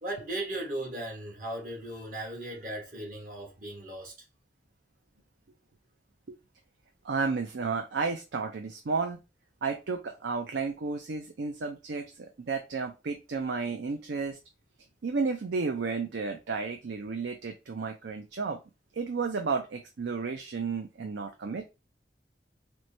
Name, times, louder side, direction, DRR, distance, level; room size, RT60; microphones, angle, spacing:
voice 1, 0.0-4.1, right 1 dB, 50° right, 1.1 m, -37 dB
voice 2, 7.0-9.2 9.6-14.4 15.0-18.6 18.9-21.6, right 4 dB, 80° right, 0.5 m, -32 dB
4.5 x 2.1 x 2.6 m
head